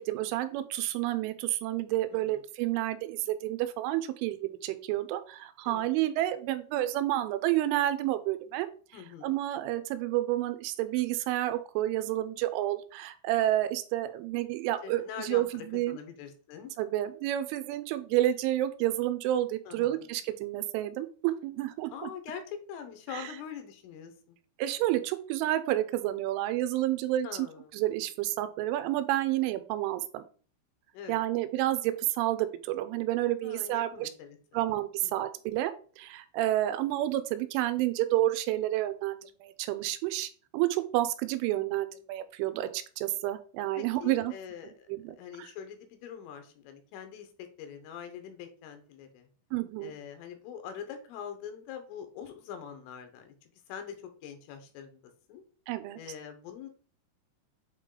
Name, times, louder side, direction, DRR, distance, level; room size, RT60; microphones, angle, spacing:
voice 1, 0.0-8.7 9.2-16.0 16.8-22.1 23.1-23.2 24.6-27.3 27.7-30.2 31.1-34.1 34.5-44.3 44.9-45.5 49.5-49.9 55.7-56.0, right 14 dB, 85° right, 11 dB, 3.0 m, -30 dB
voice 2, 2.1-2.4 5.7-5.9 8.9-9.4 14.8-16.7 19.7-20.1 21.9-24.4 27.2-27.7 30.9-31.2 33.4-34.4 35.0-35.1 43.8-44.9 45.2-49.3 49.8-55.0 55.3-55.4 56.0-56.7, left 8 dB, 85° left, 7 dB, 3.6 m, -43 dB
8.2 x 3.2 x 3.7 m, 0.41 s
omnidirectional pair, 5.5 m